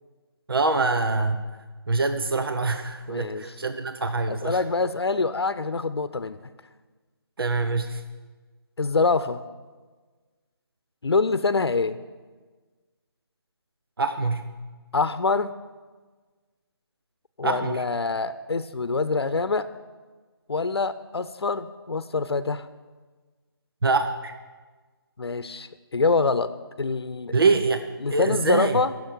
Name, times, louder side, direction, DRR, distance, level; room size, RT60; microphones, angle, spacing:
voice 1, 0.5-1.5 1.9-4.6 7.4-8.0 14.0-14.5 17.4-17.8 23.8-24.3 27.3-27.8 28.1-28.8, right 3 dB, 65° right, 8 dB, 0.9 m, -24 dB
voice 2, 3.1-3.4 4.3-6.4 8.8-9.4 11.0-12.0 14.9-15.5 17.4-19.7 20.5-22.7 25.2-26.5 26.8-27.3 28.0-28.9, left 4 dB, 90° left, 13 dB, 0.7 m, -25 dB
10.0 x 7.5 x 9.5 m, 1.4 s
figure-of-eight pair, 175°, 13 cm